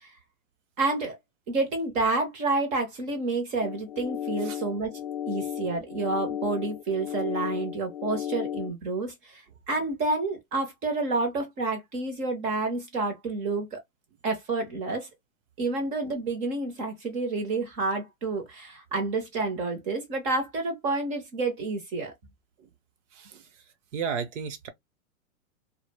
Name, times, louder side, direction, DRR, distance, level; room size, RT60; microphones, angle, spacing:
voice 1, 0.8-1.2 1.5-5.0 5.3-9.4 9.7-13.8 14.2-15.1 15.6-22.1, right 3 dB, 20° right, 0.5 m, -29 dB
sound 1, 3.6-8.7, left 10 dB, 60° left, 0.5 m, -34 dB
voice 2, 23.9-24.7, right 6 dB, 60° right, 0.8 m, -33 dB
2.2 x 2.1 x 3.2 m
hypercardioid pair, 145°, 41 cm